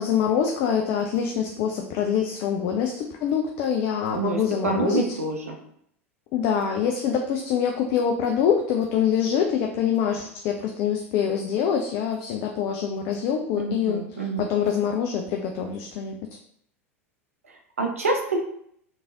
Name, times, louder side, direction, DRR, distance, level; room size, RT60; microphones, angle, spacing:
voice 1, 0.0-5.2 6.3-16.2, left 8 dB, 45° left, 2 dB, 0.4 m, -25 dB
voice 2, 4.1-5.6 13.6-14.5 17.5-18.4, right 3 dB, 80° right, 2 dB, 0.6 m, -27 dB
3.4 x 3.1 x 2.5 m, 0.68 s
figure-of-eight pair, 85°, 8 cm